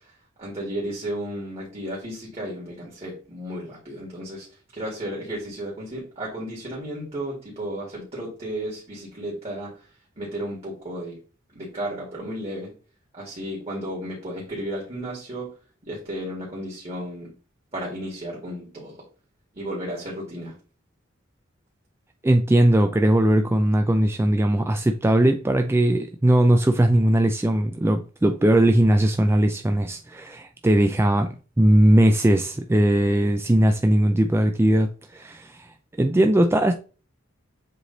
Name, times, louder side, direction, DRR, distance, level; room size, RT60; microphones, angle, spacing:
voice 1, 0.4-4.5 4.7-9.7 10.2-11.2 11.5-12.7 13.2-15.5 15.8-17.3 17.7-19.0 19.5-20.5, right 1 dB, 30° right, 2.0 m, -33 dB
voice 2, 22.2-36.8, right 1 dB, 10° right, 0.3 m, -19 dB
7.6 x 3.2 x 3.9 m
head